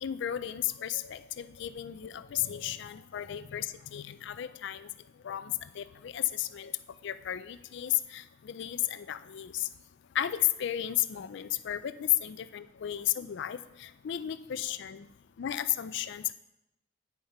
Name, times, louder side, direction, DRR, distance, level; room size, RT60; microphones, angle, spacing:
voice 1, 0.0-4.9 5.2-6.8 7.0-9.7 10.1-15.1 15.4-16.3, left 12 dB, 60° left, 14 dB, 0.4 m, -33 dB
9.4 x 5.7 x 4.2 m, 0.92 s
head